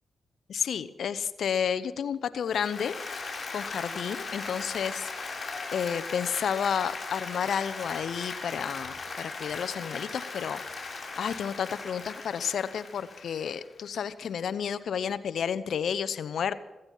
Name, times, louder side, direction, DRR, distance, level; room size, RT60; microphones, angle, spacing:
voice 1, 0.5-2.9 3.5-5.4 5.7-10.8 11.2-16.5, left 7 dB, 75° left, 15 dB, 0.9 m, -31 dB
Applause, 2.5-13.8, left 4 dB, 50° left, 5.2 m, -38 dB
15.5 x 15.5 x 5.6 m, 1.1 s
supercardioid pair, 50°, 0 cm